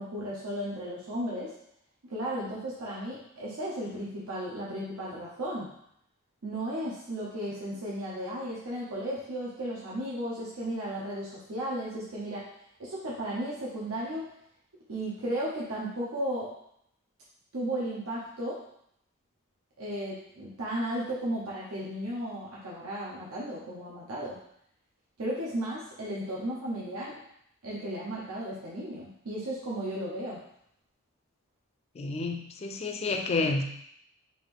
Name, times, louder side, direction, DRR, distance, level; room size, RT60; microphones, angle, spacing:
voice 1, 0.0-1.5 2.0-5.7 6.4-12.5 12.8-14.3 14.9-16.5 17.5-18.6 19.8-24.4 25.2-27.2 27.6-30.4, right 1 dB, 90° right, -6 dB, 0.8 m, -34 dB
voice 2, 32.0-33.6, left 3 dB, 30° left, 4 dB, 0.3 m, -30 dB
3.9 x 2.5 x 3.3 m, 0.73 s
head